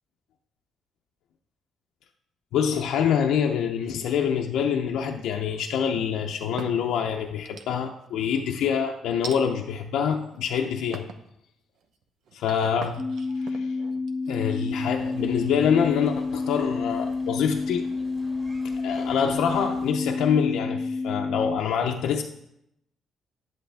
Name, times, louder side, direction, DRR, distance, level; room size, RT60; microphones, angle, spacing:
voice 1, 2.5-11.1 12.3-13.0 13.4-13.7 14.3-17.9 18.8-22.2, left 7 dB, 85° left, 2 dB, 0.6 m, -25 dB
sound 1, 5.1-5.8 6.3-7.0 7.5-8.1 9.2-9.4 10.1-10.5 10.9-11.3 11.8-15.4, right 5 dB, 75° right, 0.7 m, -43 dB
sound 2, 13.0-21.6, left 3 dB, 20° left, 0.4 m, -29 dB
sound 3, 15.0-19.9, right 1 dB, 40° right, 2.1 m, -50 dB
10.5 x 7.9 x 3.4 m, 0.81 s
cardioid pair, 90°, 0 cm